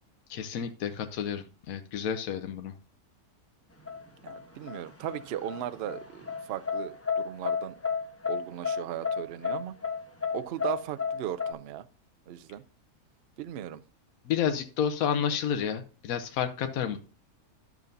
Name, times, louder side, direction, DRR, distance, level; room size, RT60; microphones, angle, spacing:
voice 1, 0.3-2.7 14.3-17.0, left 8 dB, 70° left, 7 dB, 1.1 m, -30 dB
sound 1, 3.9-11.5, left 5 dB, 10° left, 0.8 m, -32 dB
voice 2, 4.2-7.8 8.3-9.7 10.3-11.9 12.3-12.6 13.4-13.8, right 11 dB, 65° right, 12 dB, 0.6 m, -37 dB
12.0 x 7.1 x 2.6 m, 0.37 s
omnidirectional pair, 1.6 m